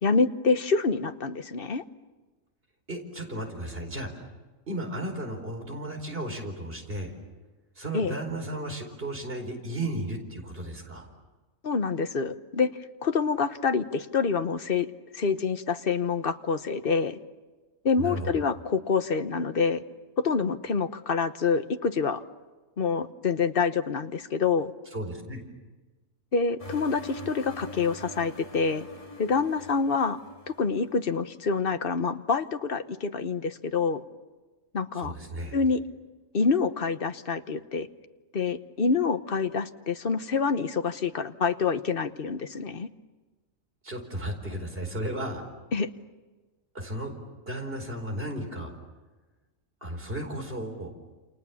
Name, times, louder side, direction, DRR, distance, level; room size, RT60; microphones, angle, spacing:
voice 1, 0.0-1.8 7.9-8.1 11.6-12.7 13.0-14.9 15.1-17.2 17.8-19.8 20.2-22.2 22.8-24.7 26.3-28.9 29.2-30.2 30.6-34.0 34.7-35.1 35.5-35.8 36.3-37.9 38.3-42.9 45.7-45.9, left 5 dB, 45° left, 10 dB, 1.2 m, -26 dB
voice 2, 2.9-4.2 4.7-7.1 7.8-11.1 18.0-18.4 24.9-25.4 34.9-35.5 43.8-45.5 46.7-47.1 47.5-48.7 49.8-50.9, right 1 dB, 45° right, 4 dB, 4.8 m, -34 dB
sound 1, 26.6-31.0, left 1 dB, 25° left, 3.0 m, -43 dB
29.0 x 28.5 x 7.2 m, 1.2 s
omnidirectional pair, 1.4 m